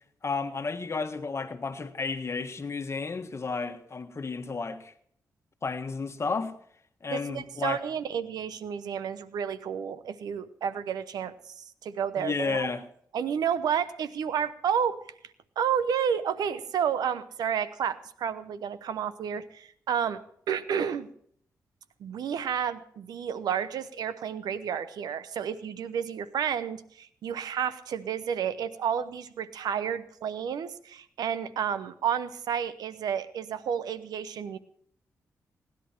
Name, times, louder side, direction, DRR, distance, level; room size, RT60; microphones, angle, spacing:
voice 1, 0.2-4.9 5.6-6.5 7.0-7.8 12.2-12.8, left 4 dB, 45° left, 1.4 m, -32 dB
voice 2, 7.1-12.7 13.1-15.0 15.6-20.2 20.5-21.1 22.0-34.6, right 8 dB, 85° right, 0.8 m, -31 dB
17.5 x 11.0 x 4.5 m
cardioid pair, 60°, 7 cm